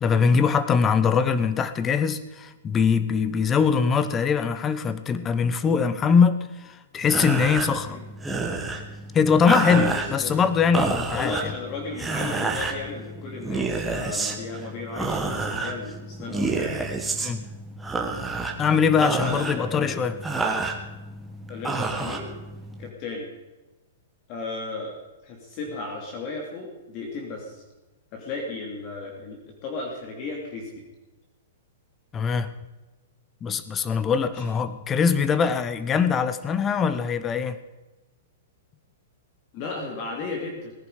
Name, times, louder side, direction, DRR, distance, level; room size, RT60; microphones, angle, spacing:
voice 1, 0.0-8.0 9.1-11.5 17.2-17.5 18.6-20.2 32.1-32.5 33.4-37.6, left 6 dB, 15° left, 13 dB, 0.9 m, -22 dB
sound 1, 7.0-22.9, right 3 dB, 5° right, 1.4 m, -30 dB
voice 2, 9.6-10.4 11.1-16.8 19.0-20.1 21.5-22.3 22.8-23.3 24.3-27.6 28.1-30.9 34.3-34.4 39.5-40.7, left 3 dB, 35° left, 0 dB, 2.6 m, -34 dB
19.0 x 11.0 x 5.0 m, 1.1 s
hypercardioid pair, 155°, 0 cm